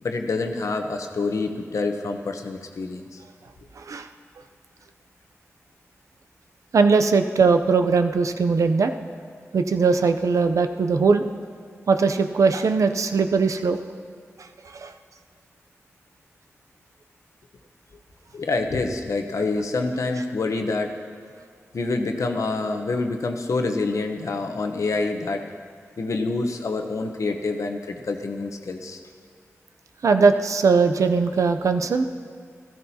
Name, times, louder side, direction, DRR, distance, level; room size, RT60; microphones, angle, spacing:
voice 1, 0.0-3.2 18.3-20.9 21.7-25.4 26.0-29.0, left 3 dB, 80° left, 5 dB, 0.9 m, -27 dB
voice 2, 3.8-4.1 6.7-8.9 9.5-11.2 11.9-13.8 14.7-14.9 30.0-32.0, right 4 dB, 85° right, 8 dB, 0.6 m, -20 dB
14.5 x 14.0 x 2.8 m, 2.1 s
cardioid pair, 55°, 5 cm